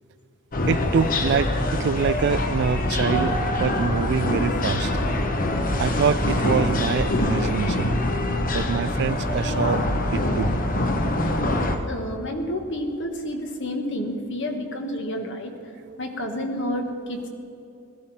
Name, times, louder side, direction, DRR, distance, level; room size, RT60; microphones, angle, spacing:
sound 1, 0.5-11.8, left 1 dB, 40° left, 1.0 m, -24 dB
voice 1, 0.7-4.9 5.8-7.9 8.5-9.8 10.1-10.5, right 6 dB, 55° right, 17 dB, 0.3 m, -25 dB
voice 2, 11.5-15.5 16.0-17.3, equal, 60° left, 3 dB, 1.7 m, -30 dB
18.0 x 14.5 x 4.3 m, 2.8 s
head